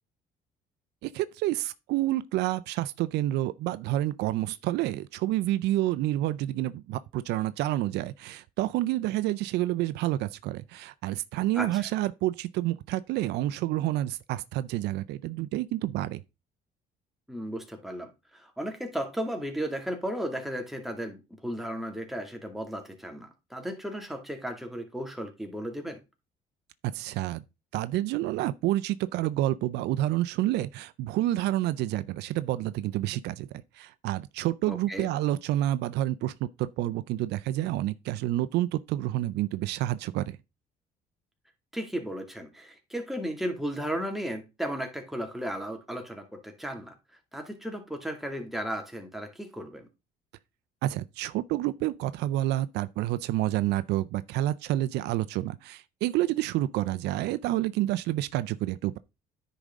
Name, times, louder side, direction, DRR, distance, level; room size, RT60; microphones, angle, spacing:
voice 1, 1.0-16.2 26.9-27.4 27.7-40.4 50.8-59.0, right 15 dB, 80° right, 0.5 m, -29 dB
voice 2, 11.6-11.9 17.3-26.0 34.7-35.1 41.7-46.9 47.3-49.9, equal, ahead, 2.3 m, -35 dB
9.9 x 5.2 x 3.6 m
cardioid pair, 110°, 17 cm